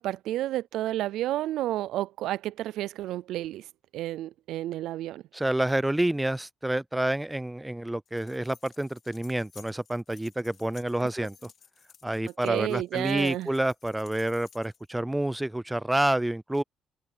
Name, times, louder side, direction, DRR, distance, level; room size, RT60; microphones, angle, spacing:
voice 1, 0.0-3.7 3.9-5.2 12.4-13.5, right 14 dB, 85° right, 0.3 m, -31 dB
voice 2, 5.3-11.4 12.0-16.6, right 1 dB, 10° right, 0.5 m, -28 dB
sound 1, 8.0-15.0, left 7 dB, 55° left, 3.8 m, -56 dB
cardioid pair, 90°, 0 cm